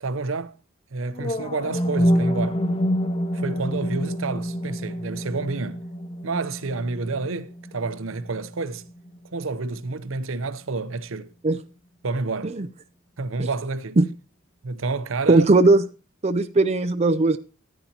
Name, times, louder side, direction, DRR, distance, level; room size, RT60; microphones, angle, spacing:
voice 1, 0.0-0.6 0.9-2.6 3.3-5.8 6.2-8.9 9.3-11.3 12.0-12.6 13.2-14.0 14.6-15.5, right 3 dB, 80° right, 0.8 m, -29 dB
sound 1, 1.1-9.2, equal, 25° left, 0.5 m, -27 dB
voice 2, 15.3-15.8 16.2-17.4, right 2 dB, 30° right, 0.5 m, -18 dB
14.0 x 9.4 x 2.8 m
head